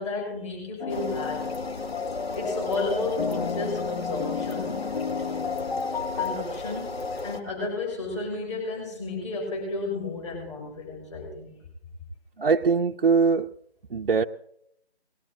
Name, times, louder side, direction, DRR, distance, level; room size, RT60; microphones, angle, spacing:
voice 1, 0.0-1.5 2.3-4.8 6.2-11.6, left 3 dB, 30° left, -1 dB, 5.6 m, -32 dB
sound 1, 0.8-6.4, left 6 dB, 50° left, 0.8 m, -32 dB
sound 2, 0.9-7.4, left 3 dB, 70° left, 1.3 m, -34 dB
voice 2, 12.4-13.5 13.9-14.2, right 5 dB, 55° right, 2 dB, 0.6 m, -22 dB
20.0 x 12.5 x 3.8 m, 0.71 s
figure-of-eight pair, 160°, 32 cm